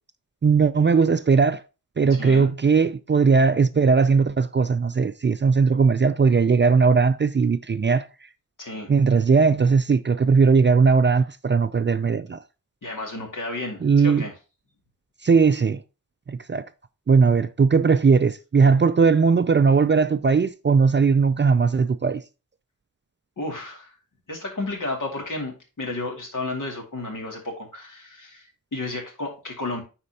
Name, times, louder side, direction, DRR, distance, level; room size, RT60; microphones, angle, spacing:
voice 1, 0.4-1.6 2.0-8.1 8.9-12.4 13.8-14.3 15.2-15.8 16.3-16.6 17.1-22.2, right 5 dB, 35° right, 0.4 m, -19 dB
voice 2, 2.2-2.5 8.6-8.9 12.8-14.3 23.4-23.9 24.3-29.8, left 2 dB, 65° left, 2.4 m, -32 dB
9.7 x 4.4 x 2.8 m
wide cardioid pair, 75°, 34 cm